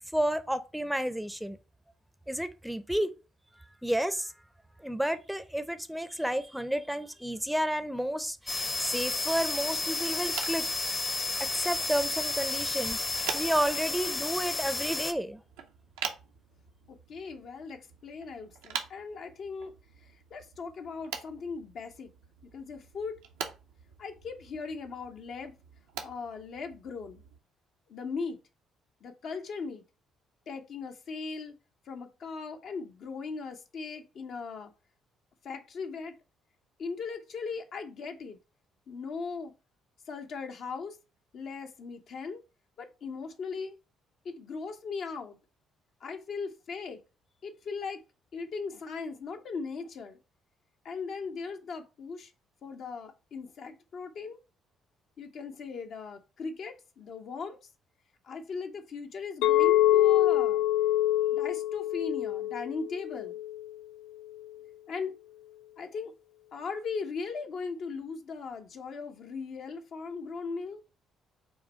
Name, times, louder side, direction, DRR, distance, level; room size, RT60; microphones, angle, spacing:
voice 1, 0.1-1.6 2.3-3.1 3.8-4.3 4.8-10.7 11.4-13.0 13.3-15.4, equal, 5° right, 0.5 m, -31 dB
sound 1, 8.5-15.1, left 2 dB, 30° left, 0.7 m, -32 dB
sound 2, 10.1-27.4, right 7 dB, 85° right, 0.6 m, -44 dB
voice 2, 16.9-19.7 20.0-22.1 22.5-23.2 24.0-25.5 26.0-27.2 27.9-28.4 29.0-29.8 30.5-31.6 31.9-34.7 35.4-36.2 36.8-38.4 38.9-39.5 40.1-41.0 41.3-42.4 42.8-43.8 44.2-45.4 46.0-47.0 47.4-48.0 48.3-50.2 50.8-52.3 52.6-54.4 55.2-57.6 58.2-60.6 61.3-63.4 64.9-65.2 65.8-66.1 66.5-70.9, left 5 dB, 60° left, 0.7 m, -38 dB
Chink clink, 59.4-63.7, left 13 dB, 80° left, 0.3 m, -25 dB
5.5 x 2.2 x 4.3 m
hypercardioid pair, 55°, 0 cm